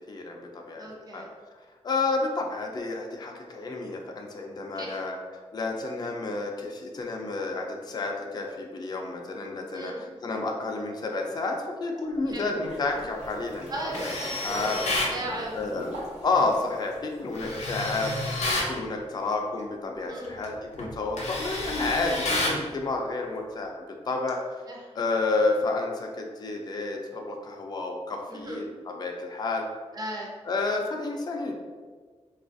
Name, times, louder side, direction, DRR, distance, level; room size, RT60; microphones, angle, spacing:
voice 1, 0.1-0.9 1.1-1.3 1.8-5.2 5.5-13.7 14.0-14.1 14.4-14.8 15.5-15.9 16.2-23.8 24.1-24.4 25.0-29.6 30.5-31.5, left 3 dB, 40° left, 1 dB, 0.3 m, -30 dB
voice 2, 0.8-1.3 4.7-5.0 9.7-10.0 12.3-12.5 13.7-15.9 17.3-17.6 20.1-20.4 24.7-24.9 28.3-28.6 29.9-30.3, right 1 dB, 35° right, -2 dB, 0.6 m, -37 dB
sound 1, 12.1-17.5, right 1 dB, 85° right, 1.0 m, -41 dB
Tools, 13.9-15.2 17.3-18.7 20.2-20.4 20.8-22.6, left 1 dB, 85° left, 0.6 m, -30 dB
3.9 x 2.3 x 2.5 m, 1.5 s
wide cardioid pair, 175°, 11 cm